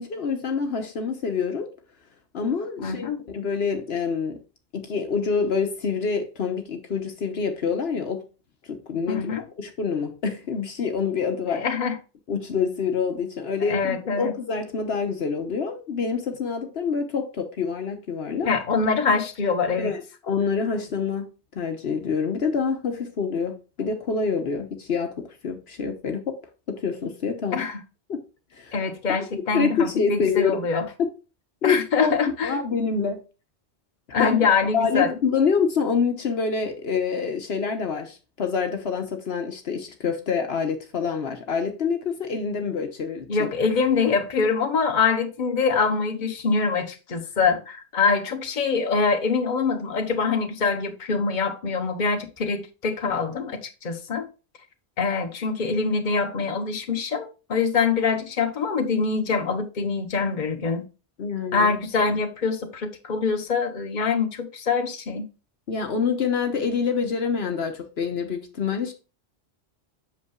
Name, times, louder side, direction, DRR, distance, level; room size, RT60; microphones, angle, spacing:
voice 1, 0.0-1.7 2.3-4.4 4.7-8.2 8.6-11.6 12.3-18.5 19.8-21.3 21.5-26.3 26.7-27.6 28.1-28.2 28.5-28.8 29.3-30.6 31.6-32.1 32.4-33.2 34.2-34.4 34.7-43.5 61.2-61.7 65.7-68.9, left 5 dB, 70° left, 1.2 m, -26 dB
voice 2, 2.8-3.2 9.1-9.4 11.6-12.0 13.7-14.3 18.4-19.9 27.5-27.8 28.7-30.9 31.6-32.5 34.1-35.1 43.3-54.3 55.0-60.8 61.5-65.3, left 5 dB, 45° left, 1.1 m, -24 dB
8.2 x 6.6 x 2.3 m
omnidirectional pair, 1.1 m